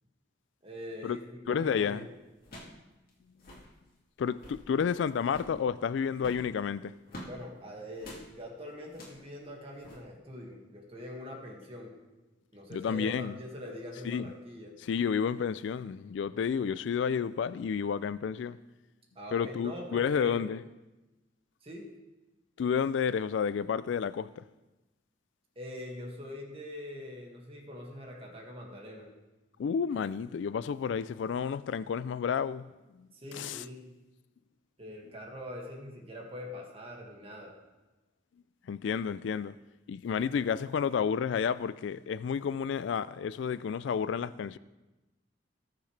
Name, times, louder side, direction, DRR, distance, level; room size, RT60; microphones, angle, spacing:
voice 1, 0.6-2.1 7.3-11.9 12.5-14.8 19.2-20.5 21.6-21.9 25.6-29.1 33.1-33.9 34.8-37.6, left 1 dB, 30° right, 2.0 m, -43 dB
sound 1, 1.4-1.7 2.4-2.8 3.1-3.2 3.3-3.7 4.2-4.7 5.3-5.6 6.1-7.4 8.0-8.3 8.9-9.2 9.8-10.0, equal, 55° left, 2.5 m, -47 dB
voice 2, 1.5-2.0 4.2-6.9 12.7-13.4 14.0-14.3 14.9-18.6 19.3-20.6 22.6-24.3 29.6-32.6 33.3-33.6 38.7-39.5 39.9-44.6, left 7 dB, 75° left, 0.3 m, -30 dB
19.0 x 6.6 x 3.3 m
head